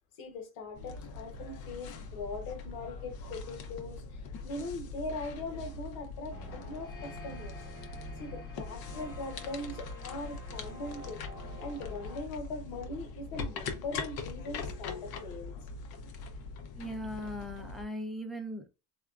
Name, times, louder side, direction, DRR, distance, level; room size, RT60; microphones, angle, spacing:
voice 1, 0.2-7.5 8.2-15.5, left 2 dB, 80° left, 1.1 m, -41 dB
sound 1, 0.7-17.8, left 4 dB, 50° left, 0.7 m, -42 dB
sound 2, 6.3-12.2, left 1 dB, 25° left, 1.2 m, -49 dB
voice 2, 16.7-18.7, equal, ahead, 0.6 m, -39 dB
3.5 x 2.3 x 2.4 m
supercardioid pair, 90°, 47 cm